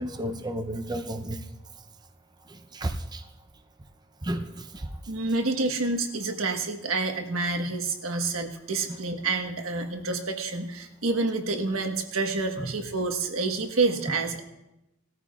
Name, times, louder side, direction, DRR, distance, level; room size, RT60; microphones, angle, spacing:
voice 1, 0.0-1.4 2.5-3.2 4.2-4.9 12.6-12.7, right 1 dB, 20° right, 6 dB, 0.6 m, -32 dB
voice 2, 5.1-14.4, right 3 dB, 80° right, 4 dB, 1.3 m, -28 dB
19.5 x 13.5 x 2.4 m, 0.93 s
head